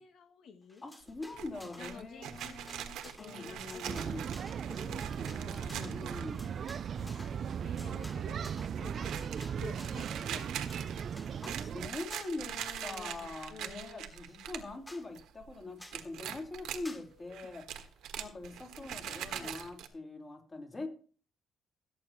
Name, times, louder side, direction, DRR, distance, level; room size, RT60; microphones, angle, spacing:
voice 1, 0.0-0.8 1.8-5.8 7.0-9.3 9.6-11.4 12.4-14.1 17.1-17.5 18.2-19.6, left 6 dB, 75° left, 4 dB, 2.1 m, -53 dB
sound 1, 0.7-2.0 2.2-10.1 10.5-11.6 12.1-12.5 12.8-13.8 14.2-14.3 14.6-14.7 14.9-15.1 15.8-16.1 16.8-17.1, equal, 10° left, 2.7 m, -54 dB
voice 2, 0.8-4.3 5.6-6.6 11.4-17.6 18.2-20.9, left 2 dB, 30° left, 1 dB, 4.2 m, -43 dB
sound 2, 1.1-6.7 7.1-7.2 7.5-8.0 8.3-14.7 15.0-15.5 15.9-16.8 17.3-19.9, right 10 dB, 85° right, 1.4 m, -43 dB
sound 3, 3.9-11.9, right 7 dB, 55° right, 0.4 m, -37 dB
17.0 x 8.2 x 3.0 m, 0.39 s
cardioid pair, 90°, 0 cm